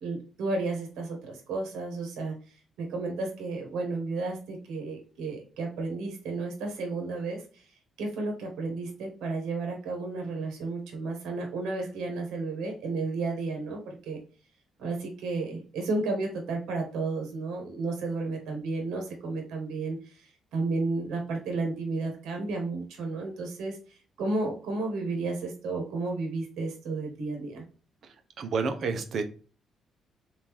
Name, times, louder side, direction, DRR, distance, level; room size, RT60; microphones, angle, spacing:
voice 1, 0.0-2.3 2.8-7.4 8.0-14.2 14.8-20.0 20.5-23.8 24.2-27.6, right 3 dB, 85° right, 2 dB, 1.0 m, -32 dB
voice 2, 28.4-29.2, right 4 dB, 60° right, 8 dB, 0.7 m, -29 dB
3.6 x 2.6 x 3.0 m, 0.39 s
cardioid pair, 90°, 0 cm